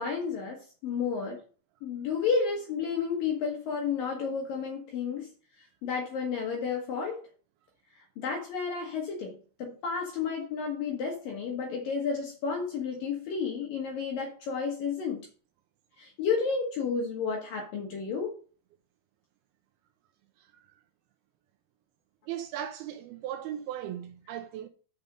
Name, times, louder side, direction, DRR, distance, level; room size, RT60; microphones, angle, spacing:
voice 1, 0.0-1.4 1.8-5.3 5.8-7.2 8.2-15.3 16.0-18.3, left 5 dB, 60° left, 2.7 m, -31 dB
voice 2, 22.3-24.7, right 11 dB, 90° right, 2.3 m, -37 dB
7.3 x 6.6 x 5.3 m
omnidirectional pair, 5.0 m